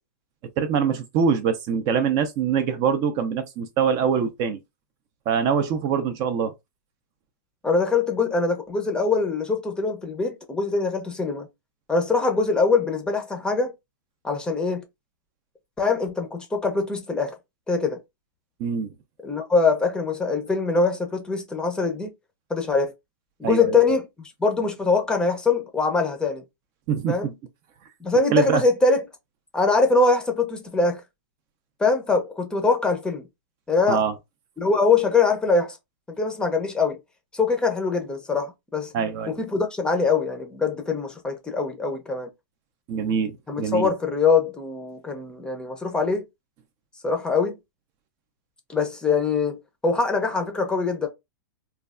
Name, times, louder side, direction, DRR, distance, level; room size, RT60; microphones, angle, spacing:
voice 1, 0.6-4.6 5.3-6.5 18.6-18.9 23.4-23.8 26.9-27.3 28.3-28.6 33.9-34.1 38.9-39.3 42.9-43.9, right 7 dB, 35° right, 0.5 m, -24 dB
voice 2, 7.6-11.5 11.9-13.7 14.2-14.9 15.8-17.3 17.7-18.0 19.2-22.1 22.5-22.9 23.4-26.4 27.1-27.3 28.0-29.0 29.5-31.0 31.8-33.3 33.7-34.0 34.6-35.8 36.2-37.0 37.3-38.9 39.3-42.3 43.5-46.2 47.0-47.5 48.7-51.1, left 4 dB, 10° left, 0.6 m, -23 dB
3.1 x 2.3 x 2.4 m
hypercardioid pair, 140°, 10 cm